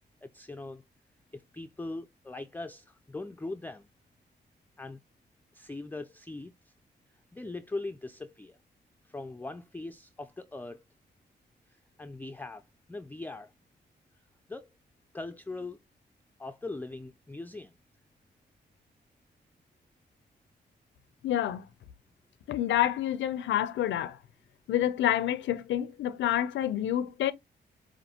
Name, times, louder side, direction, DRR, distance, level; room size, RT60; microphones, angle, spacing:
voice 1, 0.2-0.8 1.3-3.9 4.8-5.0 5.5-6.5 7.3-8.6 9.1-10.8 12.0-12.6 12.9-13.5 14.5-14.7 15.1-15.8 16.4-17.7, left 2 dB, 10° left, 0.4 m, -40 dB
voice 2, 21.2-21.7 22.5-24.2 24.7-27.3, left 11 dB, 90° left, 0.5 m, -28 dB
5.2 x 2.6 x 2.8 m
cardioid pair, 70°, 19 cm